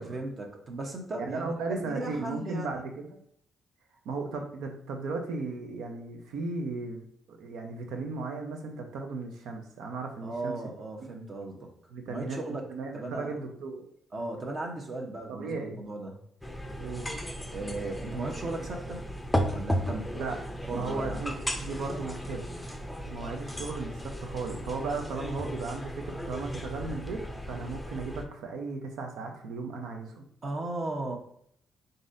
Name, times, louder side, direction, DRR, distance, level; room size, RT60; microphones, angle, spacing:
voice 1, 0.0-2.8 10.2-11.7 12.1-12.7 12.9-13.3 14.1-16.2 17.5-19.2 19.5-20.1 20.7-21.2 30.4-31.1, right 2 dB, 45° right, 1 dB, 0.9 m, -36 dB
voice 2, 1.2-3.2 4.0-10.6 11.9-12.4 12.7-13.9 15.3-15.8 16.8-17.1 20.1-20.3 20.7-22.5 23.0-27.2 27.5-30.2, right 3 dB, 85° right, 3 dB, 0.7 m, -36 dB
sound 1, 16.4-28.2, equal, 5° left, 0.5 m, -35 dB
4.0 x 3.8 x 2.6 m, 0.68 s
cardioid pair, 90°, 0 cm